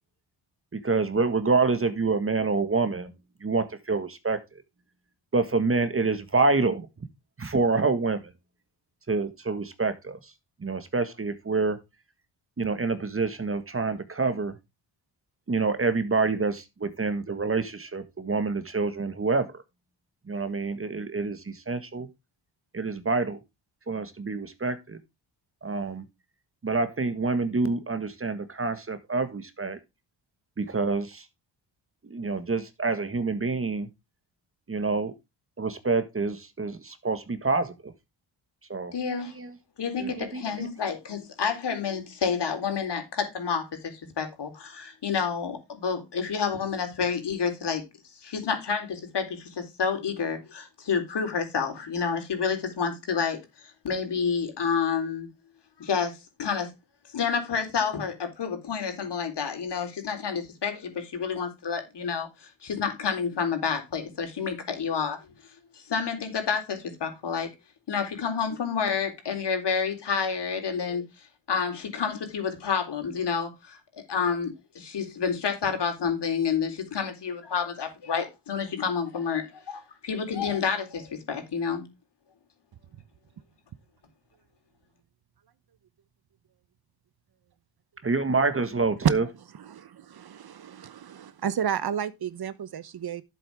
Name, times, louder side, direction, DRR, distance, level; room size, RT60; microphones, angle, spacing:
voice 1, 0.7-3.1 3.4-4.4 5.3-6.9 7.4-8.3 9.1-10.2 10.6-11.8 12.6-14.5 15.5-19.5 20.3-22.1 22.7-23.4 23.9-25.0 25.6-26.0 26.6-29.8 30.6-31.2 32.1-33.9 34.7-35.1 35.6-37.9 38.7-38.9 39.4-39.5 40.0-40.4 88.0-89.2, right 3 dB, 30° right, 1.6 m, -27 dB
voice 2, 38.9-39.3 39.8-47.8 48.2-55.3 55.8-56.7 57.1-65.2 65.7-67.5 67.9-81.9, left 6 dB, 60° left, 4.0 m, -29 dB
voice 3, 89.3-93.2, right 8 dB, 55° right, 1.0 m, -33 dB
11.5 x 7.7 x 3.5 m
cardioid pair, 95°, 47 cm